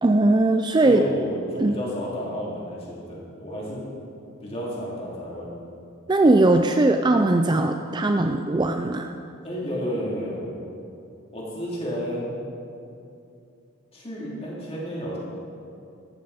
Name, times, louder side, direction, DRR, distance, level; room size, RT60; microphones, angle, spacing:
voice 1, 0.0-1.0 1.6-1.8 6.1-9.1, right 2 dB, 20° right, 5 dB, 0.4 m, -19 dB
voice 2, 0.8-3.8 4.4-5.6 9.4-10.4 11.3-12.3 13.9-15.2, equal, 30° left, -6 dB, 3.3 m, -31 dB
14.0 x 13.0 x 4.3 m, 2.6 s
head